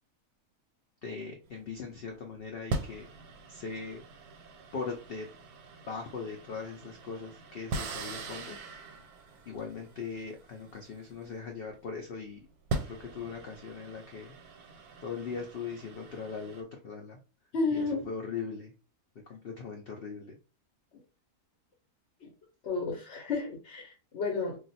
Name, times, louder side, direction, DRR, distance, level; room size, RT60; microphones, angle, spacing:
voice 1, 1.0-3.1 3.5-4.0 4.7-5.3 5.9-8.6 9.4-12.5 12.9-14.4 14.8-17.2 17.7-18.7 19.3-20.4, left 5 dB, 85° left, 2 dB, 0.5 m, -40 dB
sound 1, 1.5-1.7 2.7-11.7 12.5-16.6, right 3 dB, 90° right, 1.1 m, -41 dB
voice 2, 17.5-18.1 22.2-22.3 22.6-24.6, left 4 dB, 55° left, -1 dB, 0.9 m, -32 dB
2.4 x 2.3 x 4.0 m, 0.34 s
omnidirectional pair, 1.6 m